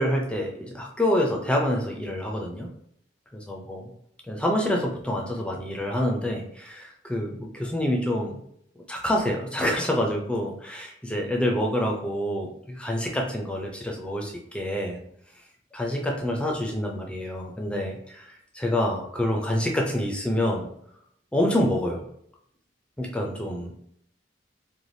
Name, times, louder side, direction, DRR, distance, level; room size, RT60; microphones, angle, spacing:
voice 1, 0.0-2.7 3.3-3.9 4.3-8.4 8.9-15.0 15.7-20.7 21.3-22.0 23.0-23.7, left 1 dB, 5° left, 0 dB, 0.4 m, -27 dB
3.2 x 2.2 x 2.6 m, 0.70 s
head